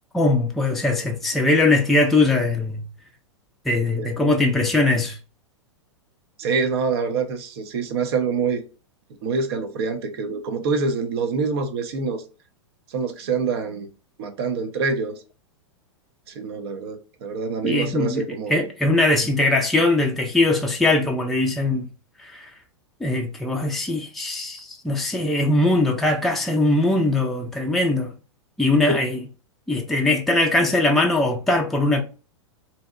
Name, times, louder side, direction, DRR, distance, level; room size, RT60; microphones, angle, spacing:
voice 1, 0.1-2.8 3.7-5.2 17.6-21.9 22.2-22.5 23.0-28.1 28.6-29.2 29.7-32.0, left 2 dB, ahead, 0.4 m, -21 dB
voice 2, 6.4-8.6 9.2-12.2 12.9-13.9 14.2-15.2 16.3-18.6 28.9-29.0, right 4 dB, 55° right, 0.6 m, -25 dB
2.7 x 2.0 x 2.3 m
hypercardioid pair, 105°, 15 cm